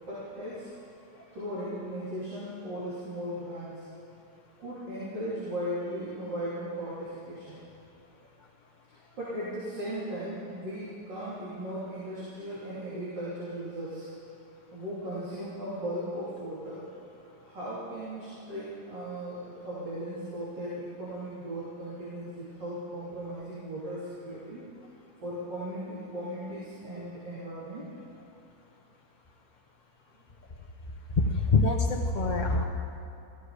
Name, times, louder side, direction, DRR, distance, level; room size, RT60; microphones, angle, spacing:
voice 1, 0.1-0.7 1.3-3.8 4.6-7.6 9.2-14.1 14.7-16.9 17.4-24.6 25.2-27.9, right 1 dB, 90° right, -10 dB, 3.8 m, -37 dB
voice 2, 31.2-32.6, left 3 dB, 40° left, 0 dB, 0.6 m, -25 dB
15.5 x 14.5 x 5.0 m, 2.8 s
omnidirectional pair, 1.9 m